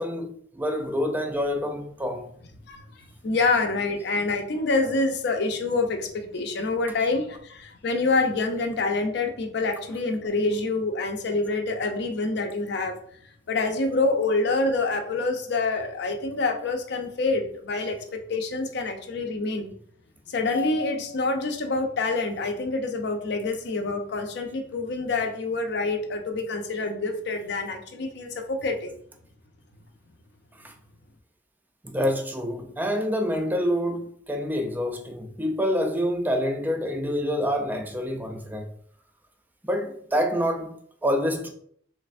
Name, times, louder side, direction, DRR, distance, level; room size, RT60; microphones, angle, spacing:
voice 1, 0.0-2.3 30.6-30.7 31.8-38.7 39.6-41.5, equal, 10° right, 0.4 m, -27 dB
voice 2, 2.7-13.0 13.5-18.0 18.3-19.7 20.3-28.9, left 3 dB, 65° left, 0.5 m, -26 dB
3.2 x 3.2 x 2.5 m
head